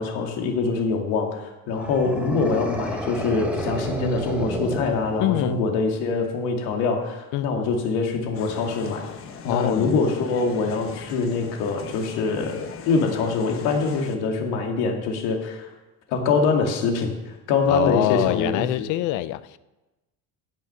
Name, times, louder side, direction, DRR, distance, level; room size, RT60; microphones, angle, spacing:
voice 1, 0.0-9.0 9.4-15.7 16.1-18.9, left 4 dB, 70° left, 2 dB, 2.4 m, -24 dB
sound 1, 1.7-5.6, right 1 dB, 5° right, 1.1 m, -31 dB
voice 2, 5.2-5.6 7.3-7.5 9.4-10.0 17.7-19.6, left 16 dB, 50° left, 16 dB, 0.5 m, -25 dB
sound 2, 8.3-14.2, left 6 dB, 35° left, 1.0 m, -39 dB
16.5 x 6.5 x 5.6 m, 1.1 s
cardioid pair, 175°, 39 cm